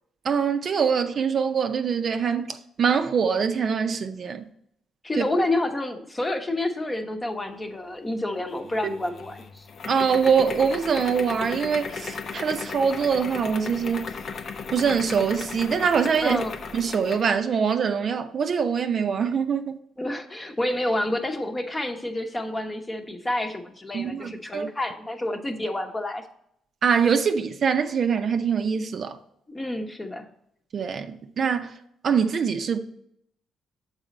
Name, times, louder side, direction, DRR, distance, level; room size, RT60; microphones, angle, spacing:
voice 1, 0.2-4.4 5.2-5.3 9.9-14.1 14.7-16.4 16.7-19.8 23.9-24.7 26.8-29.2 30.7-31.1 31.4-31.7 32.0-32.8, right 6 dB, 50° right, 0.6 m, -24 dB
voice 2, 5.0-9.7 16.2-16.6 20.0-26.2 29.5-30.3, left 1 dB, 20° left, 0.9 m, -29 dB
sound 1, 8.5-17.3, left 5 dB, 55° left, 0.6 m, -36 dB
6.7 x 4.1 x 5.2 m
cardioid pair, 90°, 0 cm